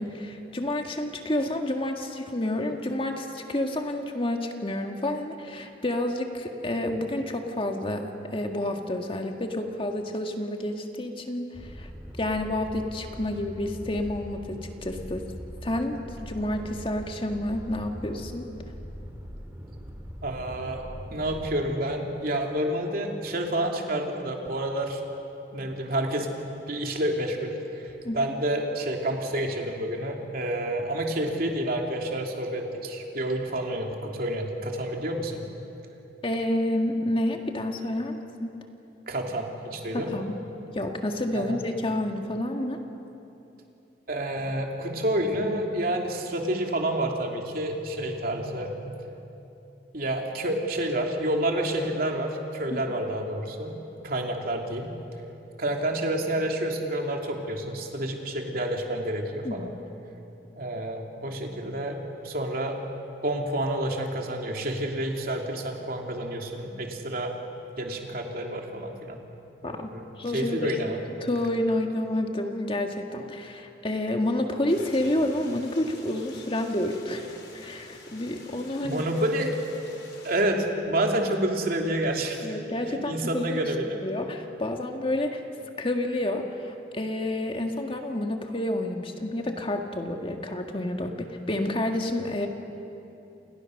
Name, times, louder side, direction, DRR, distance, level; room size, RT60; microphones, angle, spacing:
voice 1, 0.0-11.9 12.2-15.3 15.6-18.5 28.0-28.2 36.2-38.5 39.9-40.4 40.7-42.8 52.7-52.8 59.4-59.7 69.6-69.9 70.2-70.7 71.2-79.1 82.4-83.6 84.0-85.4 85.8-92.5, left 1 dB, 30° left, 4 dB, 1.8 m, -29 dB
sound 1, 11.5-21.6, equal, 15° right, 2.9 m, -41 dB
voice 2, 20.2-20.8 21.1-25.0 25.5-26.3 26.7-35.4 39.1-40.2 41.3-41.6 44.1-48.8 49.9-53.7 54.0-54.9 55.6-59.7 60.6-62.8 63.2-67.3 67.8-69.2 69.6-70.0 70.3-71.0 78.8-79.5 80.2-82.6 82.9-84.0, right 1 dB, 55° right, 1 dB, 3.1 m, -29 dB
sound 2, 74.7-80.4, left 2 dB, 65° left, 5.0 m, -47 dB
29.5 x 28.5 x 6.6 m, 2.9 s
head